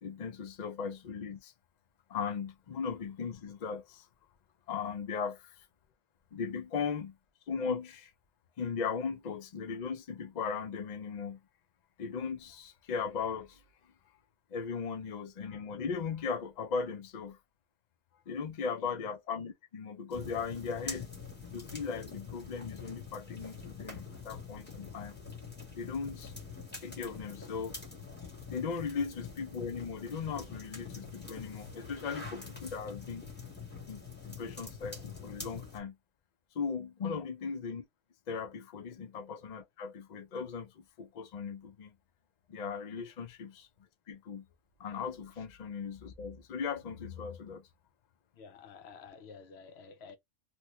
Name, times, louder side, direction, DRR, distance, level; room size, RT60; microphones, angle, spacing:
voice 1, 0.0-1.5 2.1-4.1 4.7-5.6 6.3-7.2 7.5-8.1 8.6-11.4 12.0-13.6 14.5-17.4 18.3-21.1 21.5-25.2 25.8-26.3 26.8-27.7 28.5-33.2 33.9-36.0 36.5-37.8 38.3-41.9 42.5-43.7 44.1-44.5 44.8-47.7, left 5 dB, 55° left, 0.5 m, -38 dB
sound 1, 20.1-35.8, left 5 dB, 10° left, 0.9 m, -45 dB
voice 2, 48.3-50.2, left 5 dB, 70° left, 0.9 m, -51 dB
3.0 x 2.2 x 2.9 m
omnidirectional pair, 1.2 m